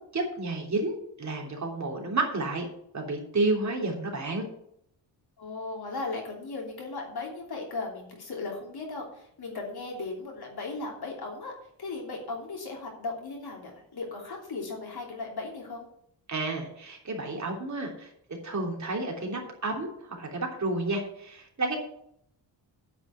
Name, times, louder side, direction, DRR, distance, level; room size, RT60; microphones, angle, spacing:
voice 1, 0.1-2.7 2.9-4.5 16.3-18.1 18.4-21.8, right 2 dB, 40° right, 0 dB, 3.2 m, -31 dB
voice 2, 5.4-11.5 11.8-15.8, left 3 dB, 55° left, 0 dB, 3.2 m, -37 dB
9.6 x 6.2 x 7.8 m, 0.70 s
wide cardioid pair, 120°, 44 cm